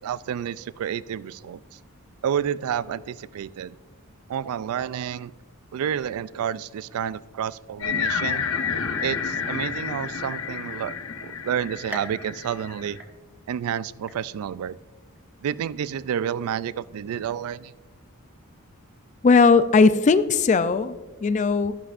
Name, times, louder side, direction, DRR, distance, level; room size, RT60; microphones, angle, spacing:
voice 1, 0.0-1.6 2.2-3.8 4.3-5.3 5.7-8.4 9.0-10.9 11.2-13.0 13.5-14.8 15.4-17.7, right 9 dB, 70° right, 18 dB, 0.3 m, -30 dB
sound 1, 7.8-13.0, left 6 dB, 65° left, 0.9 m, -30 dB
sound 2, 11.9-13.6 14.1-14.7 15.2-15.3 16.2-16.3, equal, 5° right, 0.7 m, -42 dB
voice 2, 19.2-20.9 21.2-21.8, left 4 dB, 35° left, 13 dB, 0.3 m, -18 dB
12.5 x 11.5 x 2.5 m, 1.2 s
head